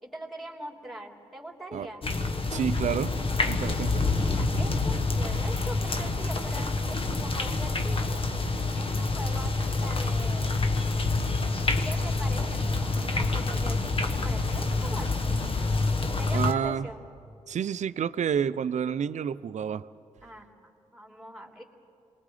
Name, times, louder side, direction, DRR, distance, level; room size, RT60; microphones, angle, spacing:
voice 1, 0.0-2.1 4.1-8.1 8.7-10.6 11.8-15.6 16.2-17.1 20.2-20.5 20.9-21.6, right 1 dB, ahead, 1 dB, 3.2 m, -42 dB
sound 1, 2.0-16.5, left 3 dB, 40° left, 1.3 m, -27 dB
voice 2, 2.5-3.1 3.5-4.1 16.3-16.9 17.5-19.8, right 8 dB, 60° right, 15 dB, 0.6 m, -29 dB
27.0 x 21.0 x 5.0 m, 2.6 s
supercardioid pair, 55°, 14 cm